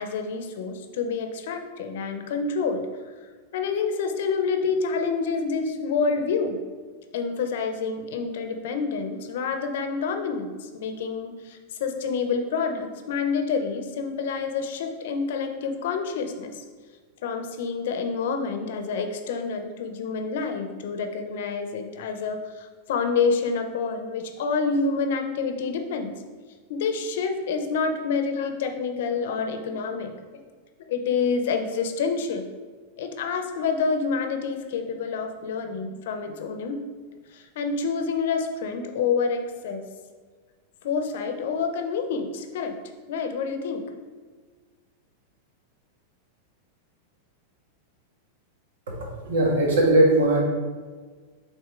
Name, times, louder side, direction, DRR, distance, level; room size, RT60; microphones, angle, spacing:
voice 1, 0.0-2.8 3.5-6.6 7.1-16.5 17.2-26.2 26.7-30.1 30.9-32.5 33.0-36.8 37.3-39.8 40.8-42.7 43.1-43.8, left 5 dB, 60° left, 6 dB, 0.7 m, -28 dB
voice 2, 49.2-50.4, right 1 dB, 80° right, -1 dB, 1.6 m, -19 dB
6.2 x 3.9 x 3.8 m, 1.5 s
supercardioid pair, 170°, 0 cm